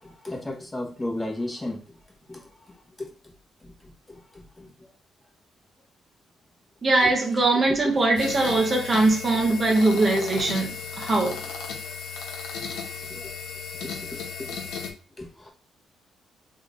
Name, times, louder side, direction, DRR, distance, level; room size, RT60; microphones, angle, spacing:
voice 1, 0.0-1.8 2.3-3.1 3.6-4.7 7.0-7.1 13.0-13.3 13.8-14.9 15.2-15.5, left 1 dB, 20° left, 1.3 m, -36 dB
voice 2, 6.8-11.4, right 2 dB, 35° right, 1.0 m, -21 dB
sound 1, 8.2-14.9, left 6 dB, 85° left, 0.9 m, -35 dB
3.9 x 3.1 x 2.5 m
cardioid pair, 90°, 0 cm